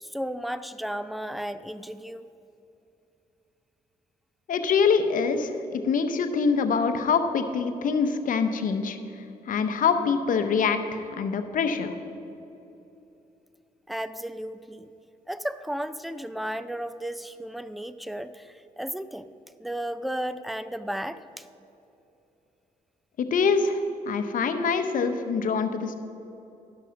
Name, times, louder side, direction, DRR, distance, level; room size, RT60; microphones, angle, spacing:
voice 1, 0.0-2.3 13.9-14.9 15.3-19.3 19.6-21.5, equal, ahead, 13 dB, 0.4 m, -34 dB
voice 2, 4.5-9.0 9.5-11.9 23.2-26.0, left 5 dB, 65° left, 8 dB, 0.9 m, -25 dB
11.5 x 6.1 x 5.8 m, 2.9 s
supercardioid pair, 65°, 15 cm